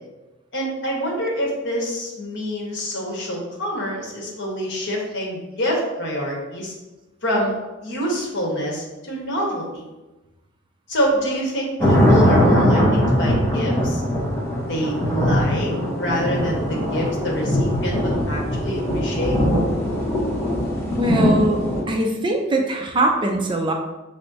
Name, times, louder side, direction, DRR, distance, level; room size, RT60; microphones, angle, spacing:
voice 1, 0.5-6.7 7.2-7.5 7.8-9.8 10.9-14.0 14.7-19.4, equal, 65° left, -2 dB, 1.2 m, -26 dB
sound 1, 11.8-21.8, equal, 15° left, 0.9 m, -20 dB
voice 2, 21.0-23.7, right 1 dB, 25° right, 2 dB, 0.4 m, -21 dB
5.3 x 3.3 x 2.7 m, 1.1 s
head